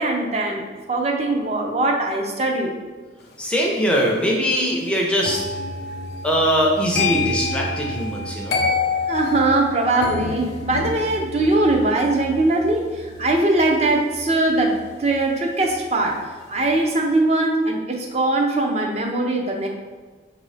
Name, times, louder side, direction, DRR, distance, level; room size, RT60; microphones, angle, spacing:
voice 1, 0.0-2.7 9.1-16.2 16.5-19.7, right 2 dB, 35° right, 1 dB, 0.6 m, -21 dB
voice 2, 3.4-5.4 6.2-8.6, equal, 5° left, -2 dB, 0.5 m, -21 dB
sound 1, 5.2-16.2 16.5-16.9, left 4 dB, 65° left, 0.5 m, -29 dB
5.3 x 2.7 x 3.2 m, 1.4 s
head